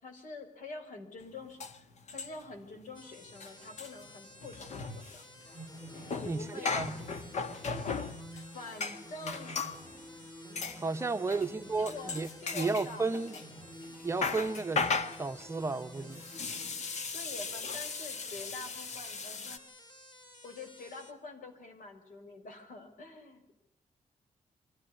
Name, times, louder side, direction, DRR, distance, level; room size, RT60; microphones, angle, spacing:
voice 1, 0.0-1.6 2.1-5.2 6.2-6.8 8.5-9.6 11.3-13.5 17.1-19.7 20.4-23.5, left 3 dB, 85° left, 5.7 m, -46 dB
sound 1, 1.2-1.3 1.6-2.6 2.9-3.0 3.3-9.8 10.6-10.8 11.3-11.5 11.9-13.5 13.8-19.6, left 4 dB, 60° left, 1.7 m, -37 dB
sound 2, 2.9-21.1, left 1 dB, 35° left, 3.5 m, -55 dB
sound 3, 5.4-17.3, right 1 dB, 20° left, 2.0 m, -50 dB
voice 2, 6.2-7.0 10.8-12.3 12.5-13.4 14.0-14.9 15.2-16.2, right 3 dB, 20° right, 1.1 m, -33 dB
25.0 x 16.0 x 9.9 m
wide cardioid pair, 150°, 13 cm